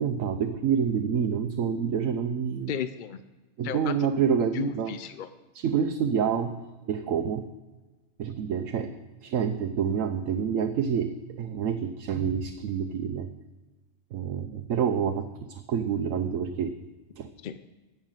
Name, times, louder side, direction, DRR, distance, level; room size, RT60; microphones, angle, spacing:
voice 1, 0.0-2.8 3.6-5.0 5.5-7.5 8.2-8.9 9.2-13.3 14.1-16.8 17.2-17.3, right 7 dB, 85° right, 7 dB, 1.1 m, -28 dB
voice 2, 2.7-3.2 3.6-3.9 4.5-5.3 17.4-17.7, left 9 dB, 60° left, 12 dB, 0.5 m, -34 dB
13.5 x 5.9 x 9.1 m, 1.2 s
omnidirectional pair, 1.3 m